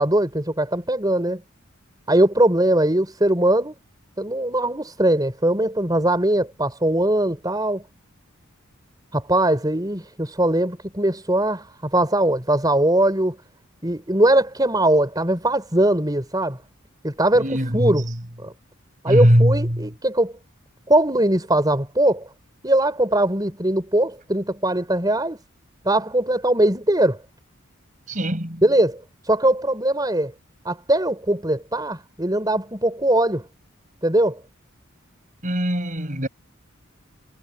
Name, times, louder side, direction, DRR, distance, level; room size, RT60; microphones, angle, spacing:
voice 1, 0.0-1.4 2.1-3.7 4.2-7.8 9.1-13.4 13.8-16.6 17.0-18.0 18.4-18.5 19.0-20.3 20.9-22.3 22.6-25.4 25.8-27.2 28.6-29.0 29.3-30.3 30.6-33.4 34.0-34.4, right 1 dB, 20° right, 5.1 m, -20 dB
voice 2, 17.4-18.0 19.1-19.8 28.1-28.6 35.4-36.3, equal, 40° right, 5.5 m, -20 dB
head